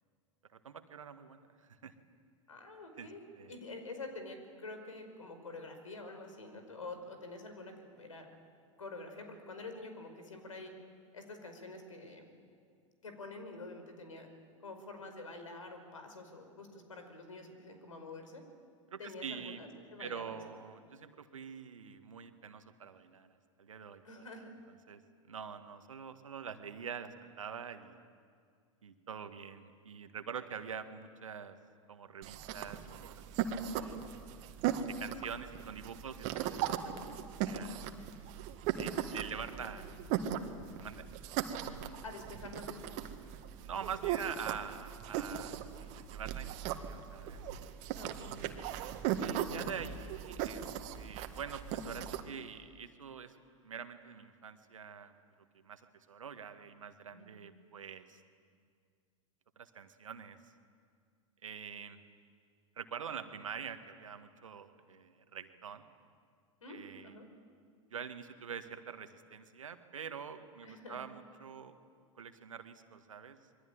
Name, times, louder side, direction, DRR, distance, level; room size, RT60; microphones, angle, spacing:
voice 1, 0.5-1.9 3.0-3.1 3.4-3.5 18.9-19.6 20.0-24.3 24.7-25.0 25.3-28.0 28.8-31.6 31.9-33.4 33.7-34.2 34.9-37.9 38.8-39.9 40.8-41.1 43.6-47.4 49.2-53.4 53.6-55.1 55.5-58.2 59.6-60.4 61.4-62.0 62.8-65.9 66.7-67.1 67.9-71.7 72.2-73.4, right 7 dB, 75° right, 9 dB, 1.8 m, -45 dB
voice 2, 2.5-8.3 8.8-10.7 11.1-12.3 13.0-14.3 14.6-18.4 19.0-20.4 24.0-24.5 36.9-37.0 39.1-39.3 39.6-39.9 42.0-42.9 47.8-48.6 57.1-57.3 66.6-67.3 70.6-71.0, left 2 dB, 75° left, 6 dB, 5.2 m, -47 dB
sound 1, 32.2-52.2, right 9 dB, 45° right, 2.0 m, -38 dB
27.0 x 23.5 x 9.1 m, 2.1 s
figure-of-eight pair, 85°, 17 cm